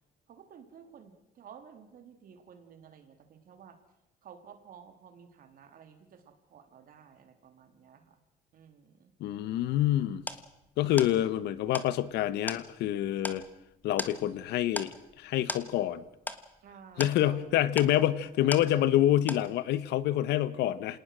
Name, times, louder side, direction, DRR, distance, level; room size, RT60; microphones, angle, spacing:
voice 1, 0.3-3.8 4.2-8.2 8.5-9.1 10.9-11.4 16.6-17.5, right 7 dB, 60° right, 7 dB, 3.2 m, -53 dB
voice 2, 9.2-10.2 10.8-13.4 13.8-16.0 17.0-21.0, left 12 dB, 80° left, 16 dB, 1.1 m, -27 dB
sound 1, 10.2-19.0 19.3-19.9, left 2 dB, 10° left, 1.5 m, -40 dB
26.5 x 19.0 x 6.3 m, 0.89 s
cardioid pair, 110°, 17 cm